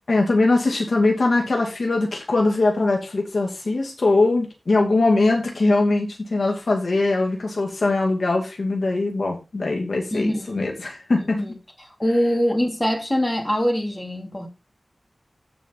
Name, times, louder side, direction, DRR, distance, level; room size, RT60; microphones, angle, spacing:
voice 1, 0.1-11.4, left 2 dB, 75° left, 2.4 m, -21 dB
voice 2, 10.1-10.7 11.2-11.5 11.8-14.5, equal, 15° left, 2.9 m, -23 dB
14.0 x 5.0 x 3.8 m
wide cardioid pair, 75°, 0 cm